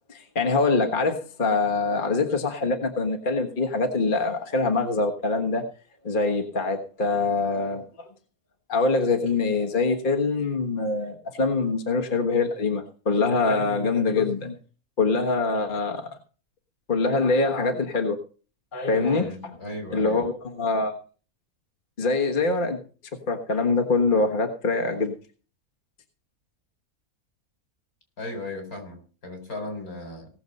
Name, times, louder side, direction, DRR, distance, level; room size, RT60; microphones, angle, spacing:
voice 1, 0.1-5.6 6.0-8.1 8.7-14.5 15.0-16.1 16.9-18.2 18.7-19.3 19.9-20.9 22.0-22.8 23.3-25.2, left 3 dB, 35° left, 3 dB, 1.5 m, -24 dB
voice 2, 18.9-20.2 28.2-30.3, left 1 dB, 75° left, 4 dB, 4.7 m, -36 dB
18.0 x 7.0 x 5.4 m, 0.39 s
omnidirectional pair, 1.5 m